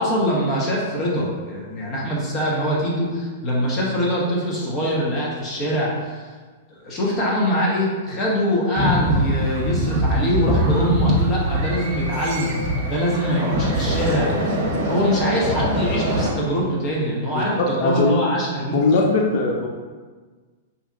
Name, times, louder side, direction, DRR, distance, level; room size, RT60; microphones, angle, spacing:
voice 1, 0.0-6.3 6.8-18.8, equal, 30° left, -4 dB, 0.9 m, -23 dB
sound 1, 8.8-16.3, equal, 55° right, 0.8 m, -23 dB
voice 2, 17.8-18.1 18.7-19.7, left 3 dB, 45° left, 0 dB, 0.5 m, -19 dB
4.1 x 2.8 x 2.4 m, 1.4 s
hypercardioid pair, 140°, 0 cm